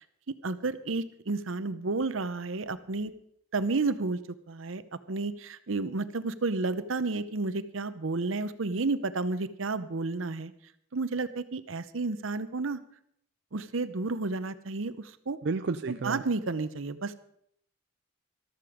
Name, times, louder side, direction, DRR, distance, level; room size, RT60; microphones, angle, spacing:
voice 1, 0.4-3.1 3.5-4.2 4.5-4.8 5.1-10.5 10.9-12.8 13.5-15.4 15.9-17.1, right 3 dB, 80° right, 13 dB, 0.8 m, -31 dB
voice 2, 15.4-16.2, right 4 dB, 60° right, 9 dB, 0.5 m, -31 dB
13.5 x 13.0 x 5.0 m, 0.70 s
head